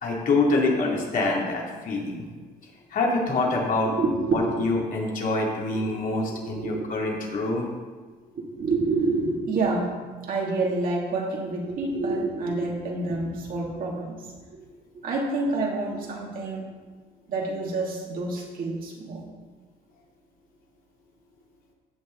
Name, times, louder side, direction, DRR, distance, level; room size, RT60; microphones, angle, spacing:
voice 1, 0.0-2.2 2.9-3.9 4.3-7.7, left 3 dB, 55° left, -2 dB, 2.6 m, -25 dB
voice 2, 3.9-4.7 5.7-5.9 6.3-6.9 8.1-9.9 10.3-14.7 15.0-16.6 17.3-19.2, right 3 dB, 55° right, -2 dB, 2.6 m, -28 dB
16.0 x 6.4 x 3.9 m, 1.4 s
cardioid pair, 110°, 17 cm